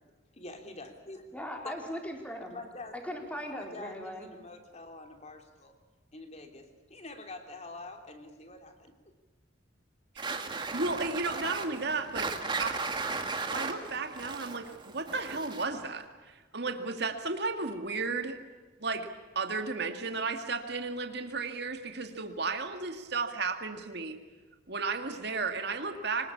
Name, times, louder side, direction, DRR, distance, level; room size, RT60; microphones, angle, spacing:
voice 1, 0.3-1.3 1.6-2.0 2.5-3.0 3.5-5.7 6.1-8.9, left 2 dB, 35° left, 5 dB, 3.3 m, -46 dB
voice 2, 1.3-2.6 2.9-4.3, equal, 5° left, 2 dB, 4.0 m, -39 dB
sound 1, 10.2-15.8, right 4 dB, 25° right, 2.0 m, -36 dB
voice 3, 10.7-12.3 12.6-12.8 13.5-18.4 18.8-19.1 19.4-24.2 24.7-26.3, right 4 dB, 60° right, 5 dB, 2.2 m, -34 dB
25.0 x 20.5 x 8.6 m, 1.3 s
head